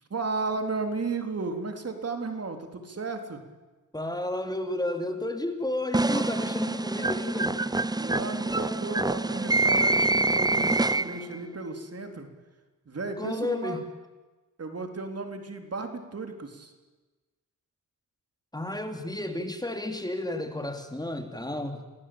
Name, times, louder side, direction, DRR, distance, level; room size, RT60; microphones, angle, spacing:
voice 1, 0.1-3.4 8.0-12.3 12.9-13.8 14.6-16.7, right 3 dB, 45° right, 5 dB, 3.9 m, -34 dB
voice 2, 3.9-7.6 13.2-13.9 18.5-21.8, left 1 dB, 10° left, 5 dB, 3.0 m, -32 dB
sound 1, 5.9-11.4, right 2 dB, 10° right, 0.7 m, -26 dB
28.0 x 18.5 x 8.9 m, 1.2 s
cardioid pair, 70°, 33 cm